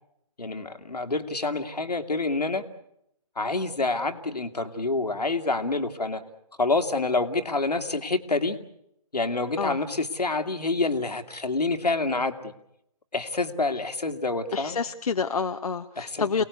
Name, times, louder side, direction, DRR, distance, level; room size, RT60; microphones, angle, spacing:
voice 1, 0.4-2.6 3.4-6.2 6.6-8.6 9.1-12.5 13.1-14.8 16.0-16.3, left 3 dB, 85° left, 7 dB, 2.3 m, -27 dB
voice 2, 14.5-16.4, left 5 dB, 65° left, 7 dB, 1.0 m, -28 dB
29.0 x 18.5 x 8.3 m, 0.79 s
figure-of-eight pair, 150°, 20 cm